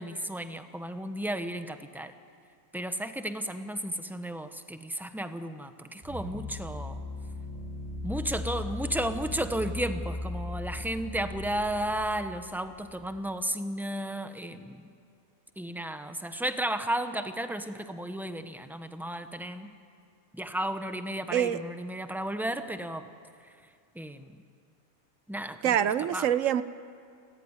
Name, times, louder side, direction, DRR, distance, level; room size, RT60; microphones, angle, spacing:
voice 1, 0.0-2.1 2.7-7.0 8.0-14.8 15.6-19.7 20.3-23.1 23.9-24.3 25.3-25.7 26.1-26.3, right 1 dB, ahead, 8 dB, 0.8 m, -33 dB
sound 1, 6.0-13.2, left 2 dB, 20° right, 3.3 m, -38 dB
voice 2, 21.3-21.6 25.6-26.6, right 10 dB, 70° right, 14 dB, 1.1 m, -25 dB
29.5 x 14.5 x 9.8 m, 2.4 s
omnidirectional pair, 1.5 m